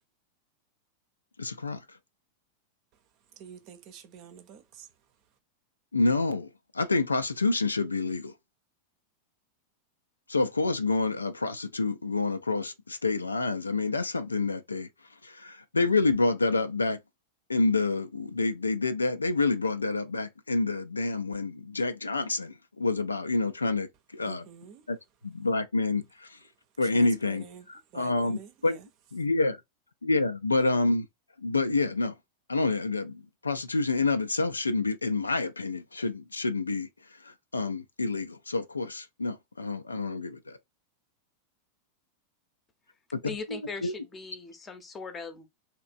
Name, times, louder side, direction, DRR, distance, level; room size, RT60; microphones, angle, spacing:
voice 1, 1.4-1.8 5.9-6.5 6.7-8.3 10.3-14.9 15.2-17.0 17.5-24.4 24.9-25.0 25.2-26.4 26.8-28.8 29.1-29.6 30.0-31.1 31.4-32.1 32.5-36.9 37.5-40.6 43.1-43.9, left 3 dB, 80° left, 0.3 m, -28 dB
voice 2, 3.4-4.9 24.2-24.9 26.8-27.7 27.9-28.9, right 8 dB, 40° right, 0.6 m, -47 dB
voice 3, 43.2-45.5, left 4 dB, 20° left, 0.7 m, -39 dB
3.2 x 2.9 x 2.4 m
figure-of-eight pair, 90°, 0 cm